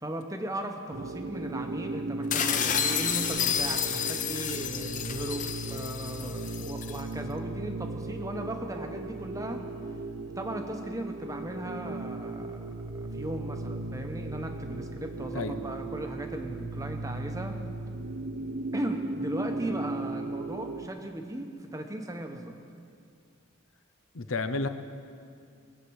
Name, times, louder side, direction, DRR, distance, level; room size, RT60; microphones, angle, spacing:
voice 1, 0.0-9.6 10.4-17.5 18.7-22.5, right 1 dB, 15° right, 4 dB, 1.0 m, -37 dB
sound 1, 0.9-20.9, right 2 dB, 70° right, 0.7 m, -37 dB
sound 2, 2.3-7.0, left 8 dB, 35° left, 0.6 m, -30 dB
voice 2, 24.1-24.7, left 3 dB, 75° left, 10 dB, 0.8 m, -31 dB
20.5 x 8.3 x 6.3 m, 2.4 s
head